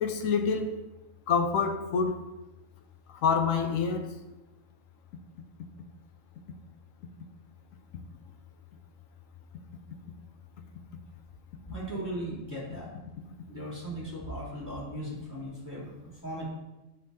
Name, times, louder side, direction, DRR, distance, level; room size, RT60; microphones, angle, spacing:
voice 1, 0.0-0.8 1.3-2.2 3.2-4.1, left 5 dB, 80° left, 1.1 m, -26 dB
voice 2, 11.7-12.9 13.5-15.9 16.2-16.4, right 1 dB, 15° left, 2.6 m, -37 dB
9.9 x 5.4 x 2.7 m
omnidirectional pair, 1.3 m